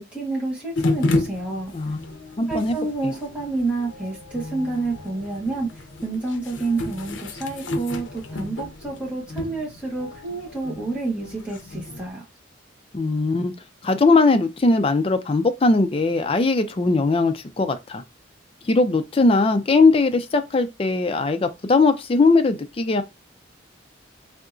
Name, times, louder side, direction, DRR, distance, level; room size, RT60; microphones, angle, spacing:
voice 1, 0.0-1.7 2.5-12.3, right 3 dB, 5° right, 1.2 m, -29 dB
sound 1, 0.8-12.1, left 2 dB, 75° left, 0.6 m, -31 dB
voice 2, 1.7-2.7 12.9-13.5 13.8-18.0 18.6-23.0, left 3 dB, 30° left, 0.3 m, -20 dB
3.6 x 2.8 x 2.5 m
head